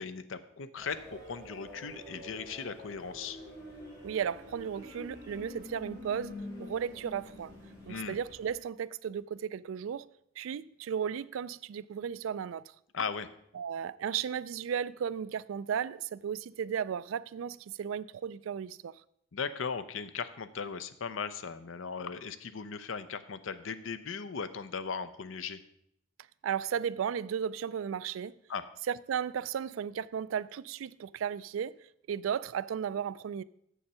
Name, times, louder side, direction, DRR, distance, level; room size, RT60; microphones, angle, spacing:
voice 1, 0.0-3.4 7.9-8.2 12.9-13.3 19.3-25.6 28.5-28.7, left 5 dB, 80° left, 0.6 m, -38 dB
sound 1, 0.8-8.5, left 1 dB, 20° left, 3.4 m, -47 dB
voice 2, 4.0-7.5 7.9-10.1 10.4-12.6 13.5-18.9 26.4-28.4 28.9-31.8 32.1-33.4, right 8 dB, 90° right, 0.3 m, -35 dB
7.6 x 7.0 x 5.6 m
head